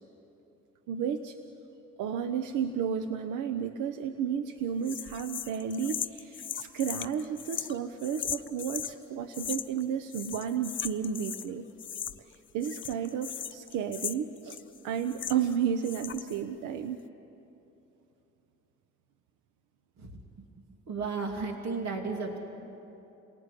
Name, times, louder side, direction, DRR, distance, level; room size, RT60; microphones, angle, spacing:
voice 1, 0.9-1.4 2.0-11.7 12.3-17.0, right 8 dB, 90° right, 8 dB, 1.0 m, -32 dB
sound 1, 4.8-8.9 9.3-9.8 10.1-11.5 11.8-12.4 12.6-15.6 15.8-16.4, left 8 dB, 40° left, 0.8 m, -38 dB
voice 2, 20.9-22.4, right 4 dB, 65° right, 2 dB, 3.0 m, -33 dB
28.5 x 19.0 x 10.0 m, 3.0 s
cardioid pair, 90°, 30 cm